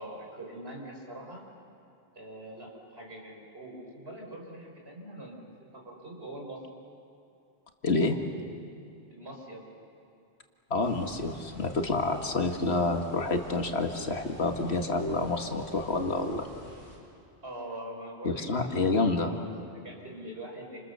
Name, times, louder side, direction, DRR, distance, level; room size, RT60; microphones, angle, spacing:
voice 1, 0.0-1.4 2.2-6.6 9.1-9.6 17.4-18.8 19.3-20.8, right 1 dB, 75° right, 0 dB, 5.4 m, -43 dB
voice 2, 7.8-8.2 10.7-16.5 18.2-19.4, left 3 dB, 80° left, 4 dB, 2.1 m, -28 dB
sound 1, 10.8-17.0, right 1 dB, 90° right, 5.3 m, -50 dB
29.5 x 28.0 x 6.9 m, 2.6 s
omnidirectional pair, 1.1 m